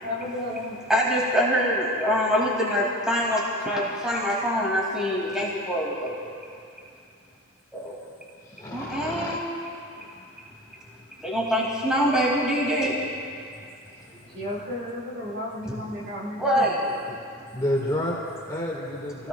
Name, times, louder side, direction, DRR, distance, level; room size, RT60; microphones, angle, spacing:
voice 1, 0.0-0.8 1.6-1.8 14.3-16.9, left 1 dB, 60° right, -6 dB, 4.9 m, -34 dB
voice 2, 0.9-6.1 7.7-7.9 8.7-9.4 11.2-13.0 16.4-16.8 17.4-17.5 19.2-19.3, equal, 5° right, -5 dB, 2.6 m, -24 dB
voice 3, 8.5-9.4 10.0-10.2 15.6-15.9 17.1-17.2 17.5-19.3, left 1 dB, 15° left, -4 dB, 2.0 m, -30 dB
28.5 x 17.5 x 2.4 m, 2.4 s
head